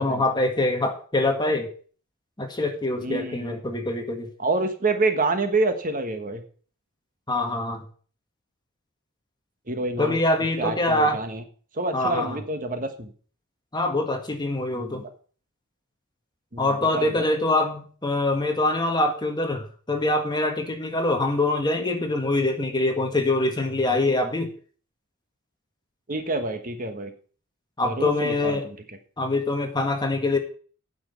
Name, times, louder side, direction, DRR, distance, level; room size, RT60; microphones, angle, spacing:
voice 1, 0.0-1.7 2.4-4.3 7.3-7.8 10.0-11.2 11.9-12.4 13.7-15.0 16.6-24.5 27.8-28.6 29.2-30.4, left 2 dB, 20° left, 4 dB, 1.6 m, -24 dB
voice 2, 3.0-3.6 4.4-6.4 9.7-10.2 10.6-11.4 11.7-13.1 14.7-15.1 16.5-17.3 26.1-27.1 27.8-28.7, right 2 dB, 40° right, 7 dB, 1.3 m, -27 dB
9.3 x 6.2 x 8.2 m, 0.43 s
head